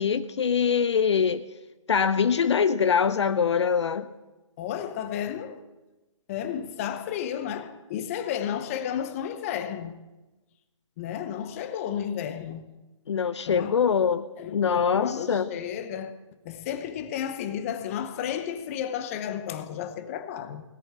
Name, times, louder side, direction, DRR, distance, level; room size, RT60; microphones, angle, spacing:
voice 1, 0.0-1.4 1.9-4.1 13.1-14.2 14.5-15.5, left 6 dB, 60° left, 0.7 m, -23 dB
voice 2, 4.6-5.6 6.3-9.9 11.0-12.6 13.5-13.8 14.4-16.1 16.4-20.6, left 9 dB, 25° left, 0.9 m, -32 dB
17.5 x 7.1 x 8.7 m
hypercardioid pair, 150°, 17 cm